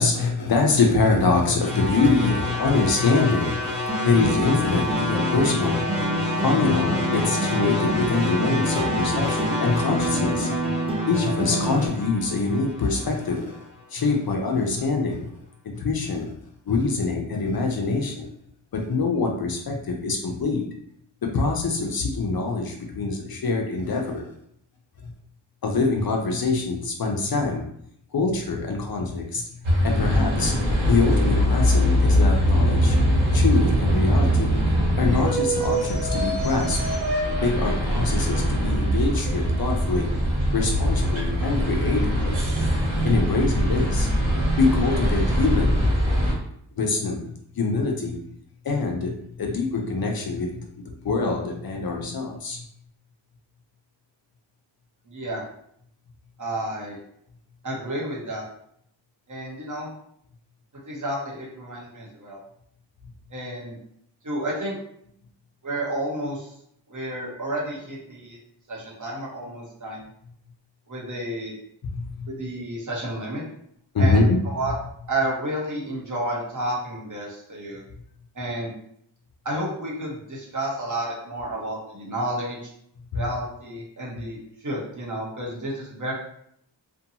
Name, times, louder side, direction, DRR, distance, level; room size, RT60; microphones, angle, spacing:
voice 1, 0.0-10.6 11.1-13.6 13.9-15.3 15.6-16.3 16.7-18.3 18.7-20.7 21.2-24.3 25.6-27.6 28.1-29.4 29.8-33.0 33.3-34.6 35.0-36.9 37.4-40.1 40.5-42.4 43.0-44.1 44.6-45.8 46.8-47.3 47.6-48.2 48.6-52.6 71.9-72.3 73.9-74.4 83.1-83.2, left 3 dB, 55° left, 2 dB, 0.5 m, -24 dB
sound 1, 1.6-13.8, left 1 dB, 15° left, 0.8 m, -30 dB
sound 2, 3.9-11.9, equal, 15° right, 0.3 m, -27 dB
sound 3, 29.6-46.3, equal, 75° right, 1.2 m, -22 dB
voice 2, 55.1-55.4 56.4-57.0 57.6-58.4 59.3-59.9 60.8-62.4 63.3-63.8 64.2-64.8 65.6-66.5 66.9-68.4 68.7-70.0 70.9-71.6 72.3-73.4 74.0-74.7 75.1-77.8 78.3-78.7 79.4-82.6 83.1-86.1, right 1 dB, 40° right, -4 dB, 0.8 m, -31 dB
2.6 x 2.2 x 2.7 m, 0.70 s
wide cardioid pair, 105°, 47 cm